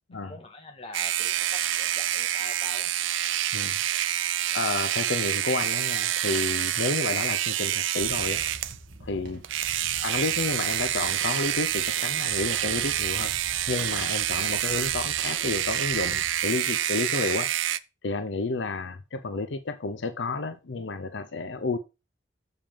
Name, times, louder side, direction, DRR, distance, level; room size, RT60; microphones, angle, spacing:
voice 1, 0.1-2.9, left 2 dB, 30° left, 1.6 m, -44 dB
sound 1, 0.9-8.8 9.4-17.8, right 12 dB, 85° right, 0.5 m, -27 dB
voice 2, 4.5-8.4 9.0-9.4 10.0-13.3 13.7-17.5 18.0-21.8, left 3 dB, 70° left, 0.6 m, -31 dB
sound 2, 8.0-17.2, right 1 dB, 65° right, 1.6 m, -46 dB
7.2 x 5.5 x 5.0 m
head